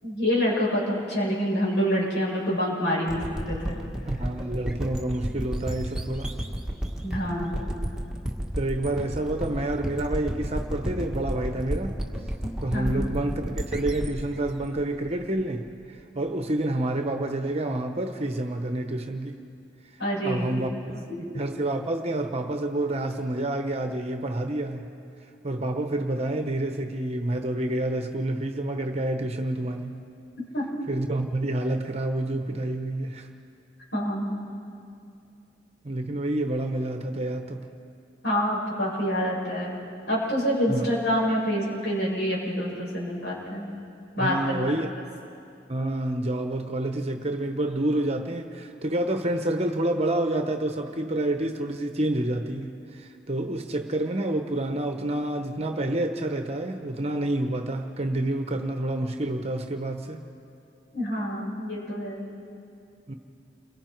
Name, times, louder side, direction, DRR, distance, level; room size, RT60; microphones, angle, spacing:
voice 1, 0.0-3.8 7.0-7.6 12.7-13.0 20.0-20.5 30.5-30.7 33.9-34.5 38.2-39.8 40.1-43.7 44.2-44.4 60.9-62.3, equal, 70° left, -5 dB, 7.3 m, -27 dB
sound 1, 3.1-15.7, equal, 5° right, 1.7 m, -32 dB
voice 2, 4.0-6.3 8.5-12.0 12.6-19.4 20.2-21.0 21.3-24.9 25.4-30.0 30.9-33.3 35.8-37.7 40.7-40.9 44.2-44.9 45.7-60.2 63.1-63.2, right 1 dB, 40° right, 6 dB, 1.0 m, -28 dB
29.5 x 23.0 x 4.6 m, 2.5 s
head